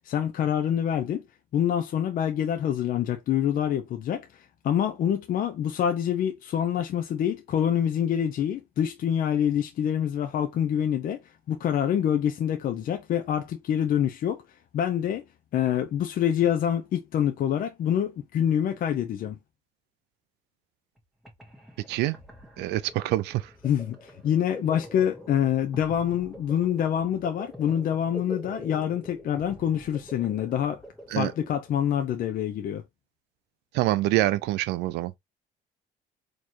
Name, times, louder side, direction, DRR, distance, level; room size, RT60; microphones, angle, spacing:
voice 1, 0.1-1.2 1.5-4.3 4.6-11.2 11.5-14.4 14.7-15.2 15.5-19.4 23.6-30.8 31.1-32.8, left 9 dB, 55° left, 0.6 m, -26 dB
sound 1, 21.0-21.1 21.2-31.9, equal, ahead, 1.5 m, -45 dB
voice 2, 22.6-23.5 31.1-31.3 33.7-35.1, right 16 dB, 85° right, 0.5 m, -25 dB
4.4 x 3.0 x 2.9 m
cardioid pair, 110°, 17 cm